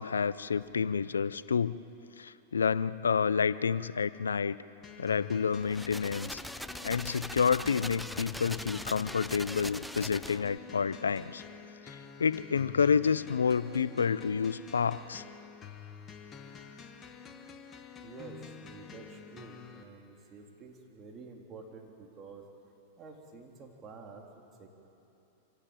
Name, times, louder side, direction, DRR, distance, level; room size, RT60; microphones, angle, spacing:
voice 1, 0.0-1.8 2.2-4.6 5.0-6.4 6.8-11.4 11.8-15.2, left 6 dB, 90° left, 17 dB, 0.5 m, -29 dB
voice 2, 0.6-1.0 18.0-22.4 23.0-24.2 24.6-24.7, right 4 dB, 30° right, 1 dB, 3.5 m, -49 dB
sound 1, 4.8-19.8, left 6 dB, 30° left, 1.7 m, -49 dB
sound 2, 5.6-10.6, equal, ahead, 0.5 m, -42 dB
25.0 x 16.5 x 9.0 m, 2.9 s
hypercardioid pair, 105°, 0 cm